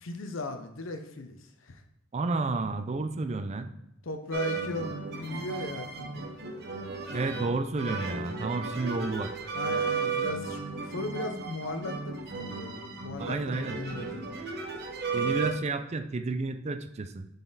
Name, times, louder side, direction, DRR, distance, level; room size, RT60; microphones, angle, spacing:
voice 1, 0.0-1.4 1.6-1.8 4.0-6.2 9.6-10.6 10.9-14.2, left 2 dB, 75° left, 7 dB, 0.7 m, -37 dB
voice 2, 2.1-3.7 7.1-9.3 13.2-13.8 15.1-17.3, right 3 dB, 35° right, 8 dB, 0.4 m, -31 dB
sound 1, 4.3-15.5, right 5 dB, 55° right, 1.0 m, -34 dB
7.4 x 4.1 x 4.0 m, 0.81 s
head